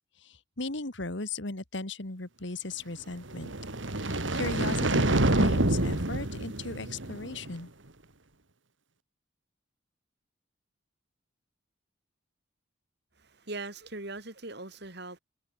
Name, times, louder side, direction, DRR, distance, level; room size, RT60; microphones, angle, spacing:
voice 1, 0.2-3.5 4.0-7.7, left 3 dB, 65° left, 2.2 m, -37 dB
sound 1, 3.3-7.5, right 2 dB, 70° right, 2.3 m, -27 dB
voice 2, 13.2-15.2, right 2 dB, 55° right, 3.4 m, -40 dB
head